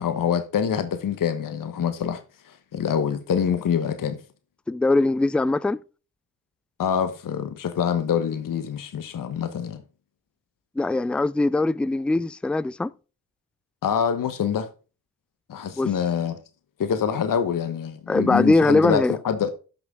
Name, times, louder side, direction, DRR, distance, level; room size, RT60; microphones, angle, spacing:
voice 1, 0.0-4.2 6.8-9.8 13.8-14.7 15.5-16.4 16.8-19.5, left 7 dB, 55° left, 1.2 m, -25 dB
voice 2, 4.7-5.8 10.8-12.9 15.8-15.9 18.1-19.1, left 2 dB, 5° left, 0.4 m, -21 dB
11.5 x 6.2 x 3.8 m
supercardioid pair, 55°, 40 cm